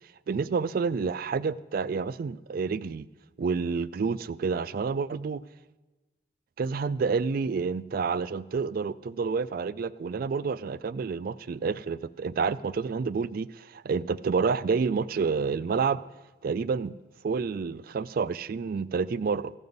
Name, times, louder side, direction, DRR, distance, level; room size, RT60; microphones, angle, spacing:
voice 1, 0.3-3.1 3.4-5.4 6.6-16.0 16.4-17.0 17.2-19.5, right 5 dB, 50° right, 17 dB, 0.3 m, -29 dB
15.5 x 5.5 x 7.9 m, 1.2 s
head